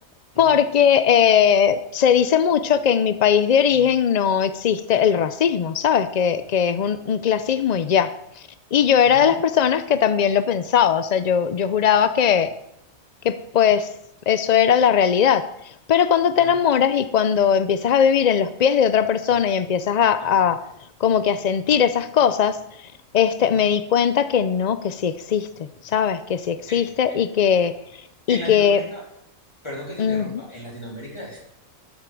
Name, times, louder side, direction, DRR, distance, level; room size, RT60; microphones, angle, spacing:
voice 1, 0.4-8.1 8.7-12.5 13.2-13.9 14.3-15.4 15.9-20.6 21.0-22.6 23.1-25.5 25.8-27.7 28.3-28.8 30.0-30.4, left 8 dB, 75° left, 12 dB, 0.4 m, -19 dB
voice 2, 26.7-27.2 28.3-29.0 29.6-31.4, equal, 20° left, -2 dB, 3.3 m, -37 dB
12.5 x 9.5 x 4.7 m, 0.77 s
omnidirectional pair, 1.4 m